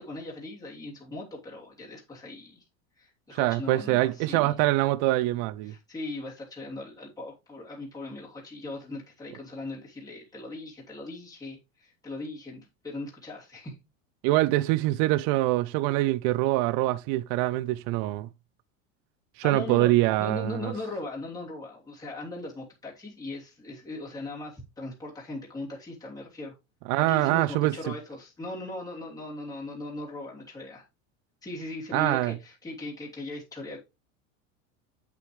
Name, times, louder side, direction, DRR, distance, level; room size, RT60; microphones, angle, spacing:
voice 1, 0.0-2.6 3.0-4.6 5.6-13.8 19.4-19.9 20.2-26.5 27.0-30.8 31.4-33.8, left 2 dB, 10° left, 2.9 m, -39 dB
voice 2, 3.3-5.7 14.2-18.3 19.4-20.7 26.9-27.7 31.9-32.3, right 17 dB, 50° right, 0.5 m, -24 dB
7.7 x 7.0 x 3.1 m
supercardioid pair, 110°, 40 cm